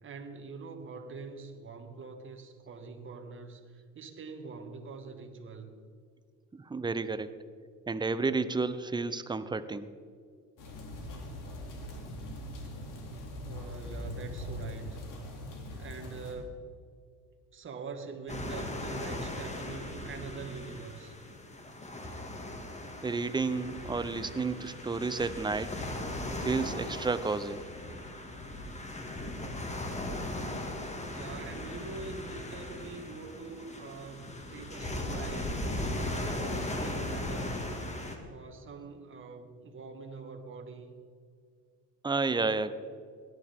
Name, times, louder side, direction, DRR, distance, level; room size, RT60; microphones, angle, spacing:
voice 1, 0.0-5.7 13.4-15.0 15.7-16.7 17.5-21.1 31.1-37.6 38.3-40.9, right 4 dB, 35° right, 4 dB, 1.8 m, -44 dB
voice 2, 6.5-7.3 7.9-9.9 23.0-25.7 26.4-27.6 42.0-42.7, right 4 dB, 10° right, 12 dB, 0.7 m, -31 dB
sound 1, 10.6-16.3, left 1 dB, 55° left, 2.9 m, -41 dB
sound 2, 18.3-38.2, left 1 dB, 20° left, 2.0 m, -38 dB
17.5 x 11.5 x 3.7 m, 2.1 s
supercardioid pair, 85°, 37 cm